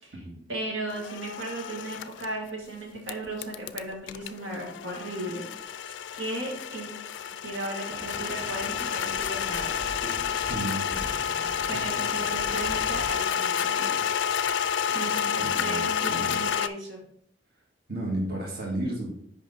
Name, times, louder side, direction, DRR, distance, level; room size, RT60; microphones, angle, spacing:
voice 1, 0.5-5.4 5.7-5.9 6.1-6.9 7.3-9.8 11.7-13.9 14.9-17.0, right 2 dB, 80° right, -1 dB, 1.7 m, -36 dB
sound 1, 0.9-2.3 3.1-16.7, left 8 dB, 70° left, 0.4 m, -30 dB
sound 2, 7.9-13.1, equal, 25° right, 0.8 m, -42 dB
voice 2, 10.5-11.1 14.9-15.1 15.4-16.4 17.9-19.2, right 1 dB, 55° right, -2 dB, 1.7 m, -33 dB
5.9 x 5.2 x 4.2 m, 0.70 s
head